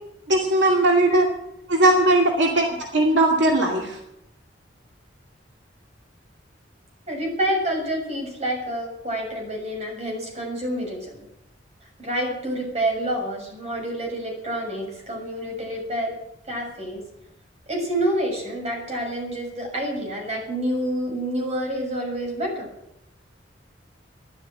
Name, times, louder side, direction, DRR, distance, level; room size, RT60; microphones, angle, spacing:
voice 1, 0.3-1.3 1.7-4.0, right 1 dB, 75° right, 0 dB, 2.4 m, -19 dB
voice 2, 7.1-11.2 12.0-16.1 16.5-17.0 17.7-22.7, right 1 dB, 35° right, 1 dB, 6.6 m, -28 dB
13.5 x 11.5 x 9.0 m, 0.84 s
head